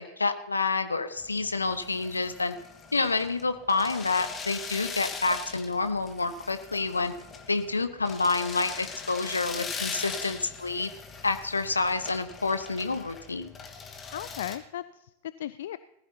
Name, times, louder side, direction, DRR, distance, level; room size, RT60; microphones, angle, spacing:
voice 1, 0.0-2.5 2.9-7.1 7.5-10.9 11.2-13.5, left 3 dB, 80° left, 10 dB, 1.0 m, -28 dB
sound 1, 1.2-14.6, left 5 dB, 20° left, 1.6 m, -41 dB
voice 2, 14.1-15.8, left 12 dB, 60° left, 16 dB, 0.3 m, -36 dB
20.0 x 14.5 x 2.8 m, 0.90 s
figure-of-eight pair, 90°, 0 cm